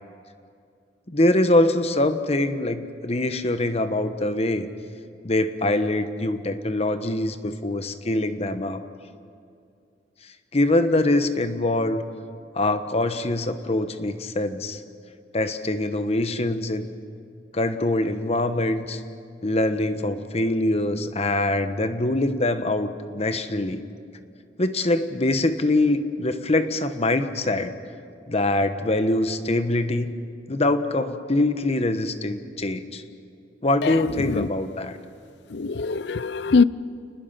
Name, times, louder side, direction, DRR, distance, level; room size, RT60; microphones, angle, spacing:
voice 1, 1.1-4.7 5.2-8.8 10.5-12.0 12.5-14.8 15.3-16.9 17.5-19.0 19.4-23.8 24.6-27.7 28.3-30.1 30.5-33.0 33.6-35.0, left 1 dB, 35° left, 1.1 m, -23 dB
voice 2, 33.8-34.5 35.5-36.6, left 4 dB, 75° left, 0.6 m, -22 dB
29.5 x 20.0 x 5.8 m
head